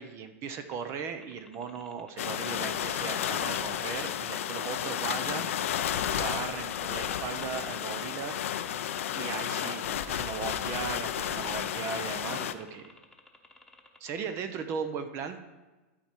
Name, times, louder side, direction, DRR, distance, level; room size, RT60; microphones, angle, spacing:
voice 1, 0.0-8.4 9.1-12.9 14.0-15.4, right 6 dB, 40° right, 9 dB, 0.7 m, -37 dB
sound 1, 0.7-14.5, left 2 dB, 5° left, 1.1 m, -56 dB
sound 2, 2.2-12.5, left 10 dB, 75° left, 0.5 m, -32 dB
12.5 x 4.4 x 4.5 m, 1.2 s
hypercardioid pair, 115°, 7 cm